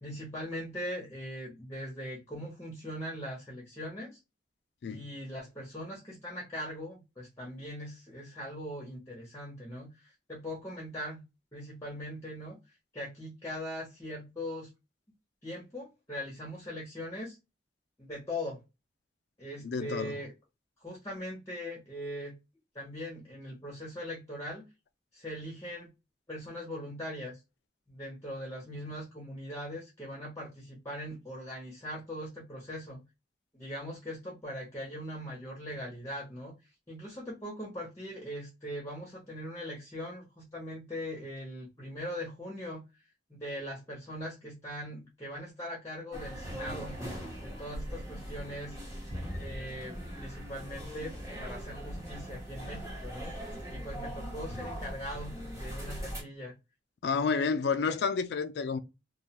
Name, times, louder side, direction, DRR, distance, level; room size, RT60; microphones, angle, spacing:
voice 1, 0.0-4.2 4.9-11.2 11.5-12.6 12.9-14.7 15.4-17.4 18.0-18.6 19.4-20.3 20.8-22.4 22.7-24.7 25.1-25.9 26.3-27.4 27.9-33.0 33.5-36.5 36.9-42.8 43.3-47.0 47.4-48.8 49.4-51.1 51.4-53.3 53.7-56.5 57.9-58.0, equal, 20° left, 0.8 m, -40 dB
voice 2, 19.6-20.2 57.0-58.8, left 5 dB, 65° left, 0.3 m, -30 dB
sound 1, 46.1-56.2, equal, 20° right, 1.1 m, -40 dB
2.3 x 2.2 x 2.8 m
head